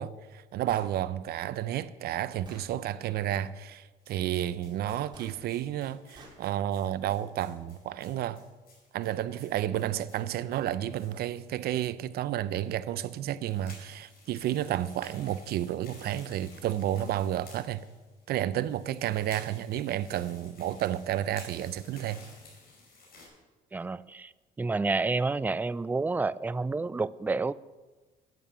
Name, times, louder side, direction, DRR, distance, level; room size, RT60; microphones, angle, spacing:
voice 1, 0.0-8.4 8.9-17.8 18.3-22.2, right 12 dB, 70° right, 0.6 m, -31 dB
Gunshot gunfire, 0.7-0.9 1.8-1.9 2.4-2.7 5.1-5.3 6.1-6.4, right 2 dB, 25° right, 3.5 m, -50 dB
sound 1, 4.0-11.9 12.1-12.2 12.5-12.6 13.2-23.3, left 3 dB, 65° left, 5.4 m, -54 dB
voice 2, 23.7-24.3 24.6-27.5, right 3 dB, 10° right, 0.3 m, -29 dB
11.0 x 9.3 x 6.9 m
cardioid pair, 110°, 17 cm